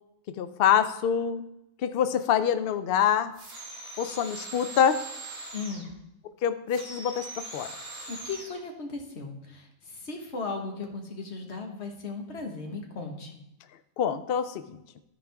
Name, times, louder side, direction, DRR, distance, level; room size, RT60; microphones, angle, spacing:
voice 1, 0.4-1.5 1.8-3.3 4.0-5.0 6.4-7.3 7.5-7.7 14.0-14.8, left 8 dB, 80° left, 10 dB, 0.5 m, -25 dB
sound 1, 3.3-5.9 6.7-8.6, right 2 dB, 85° right, 2.1 m, -41 dB
voice 2, 5.5-5.8 8.1-13.4, left 4 dB, 50° left, 2 dB, 1.5 m, -37 dB
13.5 x 4.7 x 3.5 m, 0.84 s
omnidirectional pair, 1.5 m